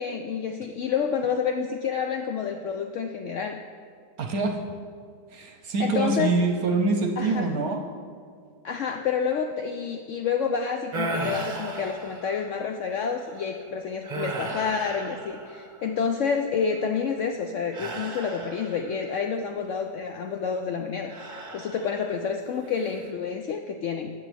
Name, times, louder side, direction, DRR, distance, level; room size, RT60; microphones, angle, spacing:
voice 1, 0.0-3.6 5.8-6.4 7.2-7.5 8.6-21.1 21.5-24.1, left 6 dB, 75° left, 4 dB, 0.7 m, -29 dB
voice 2, 4.2-4.5 5.3-7.8, right 3 dB, 65° right, 4 dB, 1.1 m, -25 dB
sound 1, 10.9-12.6 13.2-13.5 14.0-15.9 17.7-19.1 21.1-22.2 22.6-23.1, right 2 dB, 35° right, 0.9 m, -35 dB
13.5 x 9.0 x 3.4 m, 2.2 s
omnidirectional pair, 1.9 m